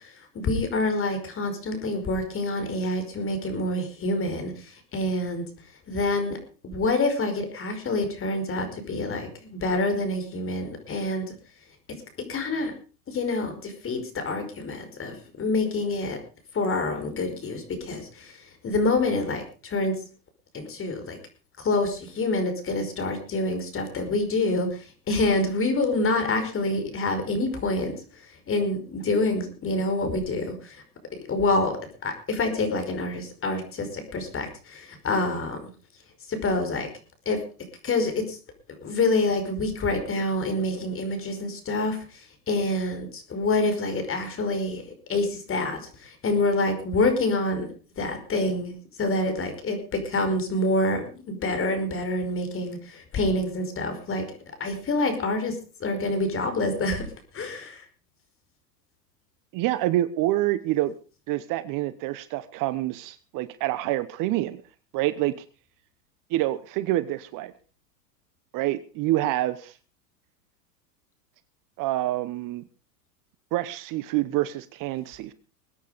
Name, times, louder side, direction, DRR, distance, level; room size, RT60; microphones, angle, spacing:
voice 1, 0.3-5.4 5.9-6.4 6.6-11.3 12.3-12.7 13.1-16.2 16.5-18.3 18.6-19.9 20.5-21.2 21.6-24.8 25.1-27.9 28.5-30.8 31.3-31.7 32.0-35.6 36.3-36.9 37.2-37.4 37.8-38.4 38.8-44.8 45.1-47.7 48.0-48.7 49.0-54.2 54.6-55.5 55.8-57.1 57.3-57.8, left 2 dB, 25° left, 8 dB, 5.1 m, -27 dB
voice 2, 59.5-60.9 61.3-64.6 64.9-65.3 66.3-67.5 68.5-69.7 71.8-72.6 73.5-75.3, right 15 dB, 40° right, 15 dB, 1.1 m, -27 dB
22.0 x 9.4 x 5.2 m, 0.37 s
hypercardioid pair, 110°, 48 cm